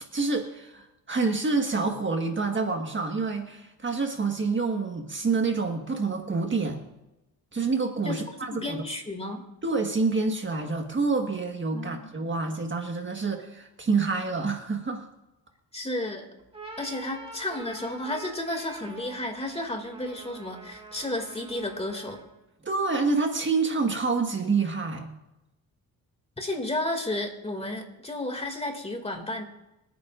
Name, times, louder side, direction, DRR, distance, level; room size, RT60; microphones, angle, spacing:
voice 1, 0.1-6.8 7.5-8.8 9.6-15.1 22.6-25.1, right 4 dB, 30° right, 3 dB, 1.6 m, -27 dB
voice 2, 8.5-9.4 11.7-12.1 15.7-16.3 16.8-22.2 26.4-29.4, left 1 dB, 15° left, 3 dB, 2.4 m, -32 dB
sound 1, 16.4-22.4, right 2 dB, 15° right, 3.5 m, -45 dB
26.5 x 9.3 x 2.6 m, 0.95 s
cardioid pair, 80°, 36 cm